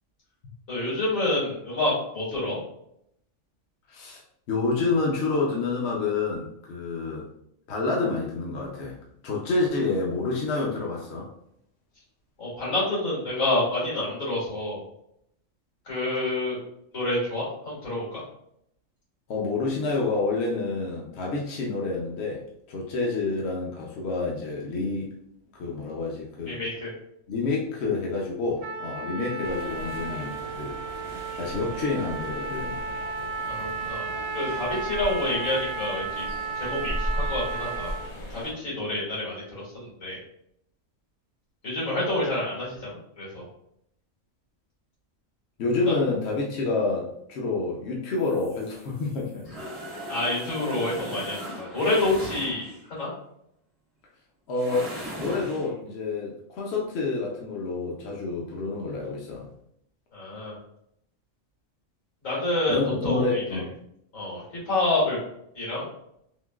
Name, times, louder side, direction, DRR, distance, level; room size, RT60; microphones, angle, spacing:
voice 1, 0.7-2.6 12.4-14.8 15.9-16.6 16.9-18.2 26.5-26.9 33.5-34.1 34.3-36.3 36.6-37.9 38.3-39.4 39.7-40.2 41.6-43.4 45.9-46.0 50.1-53.1 60.1-60.6 62.2-63.6 64.1-65.2 65.6-65.9, left 2 dB, 80° left, -6 dB, 2.1 m, -28 dB
voice 2, 3.9-4.2 4.5-7.3 7.7-9.0 9.2-11.3 19.3-22.4 22.7-25.1 25.5-26.6 27.3-30.8 31.4-32.8 45.6-49.6 54.5-54.9 55.2-59.5 62.7-63.7, left 3 dB, 60° left, -2 dB, 0.8 m, -28 dB
Trumpet, 28.6-38.1, right 4 dB, 90° right, 1.0 m, -34 dB
sound 1, 29.4-38.5, left 1 dB, 35° left, 0.5 m, -37 dB
sound 2, 48.2-53.0 54.5-55.7, equal, 35° right, 0.7 m, -38 dB
3.7 x 2.7 x 2.3 m, 0.73 s
omnidirectional pair, 1.3 m